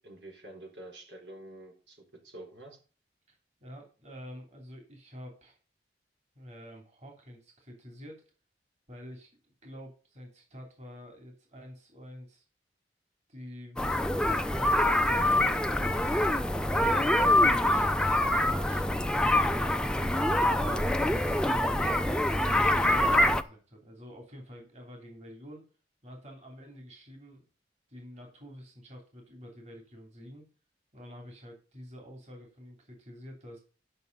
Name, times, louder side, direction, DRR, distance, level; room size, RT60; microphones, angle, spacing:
voice 1, 0.0-2.8, right 1 dB, 90° right, 1 dB, 4.4 m, -48 dB
voice 2, 3.3-5.6 6.3-8.2 8.9-12.4 13.3-13.9 14.5-16.3 16.7-19.0 19.6-21.9 22.4-25.7 26.0-27.4 27.9-30.4 30.9-33.6, equal, 40° right, 2 dB, 3.0 m, -48 dB
sound 1, 13.8-23.4, left 1 dB, 5° left, 0.6 m, -25 dB
11.0 x 6.3 x 5.3 m, 0.36 s
head